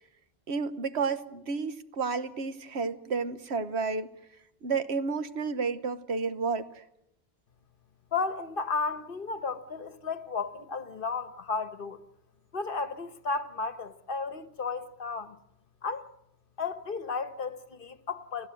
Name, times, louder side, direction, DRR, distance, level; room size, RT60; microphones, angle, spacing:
voice 1, 0.5-4.1 4.6-6.8, right 4 dB, 80° right, 1.3 m, -31 dB
voice 2, 8.1-12.0 12.5-15.4 15.8-16.1 16.6-18.5, left 4 dB, 55° left, 1.2 m, -33 dB
29.5 x 16.0 x 7.6 m
omnidirectional pair, 1.1 m